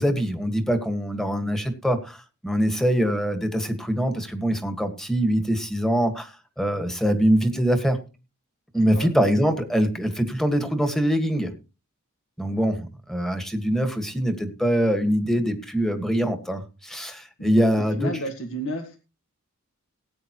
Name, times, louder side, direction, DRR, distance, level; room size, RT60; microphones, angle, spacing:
voice 1, 0.0-8.0 8.7-11.5 12.4-18.1, equal, ahead, 7 dB, 1.6 m, -23 dB
voice 2, 17.4-19.0, equal, 65° left, 5 dB, 1.9 m, -32 dB
18.5 x 9.0 x 3.0 m, 0.32 s
head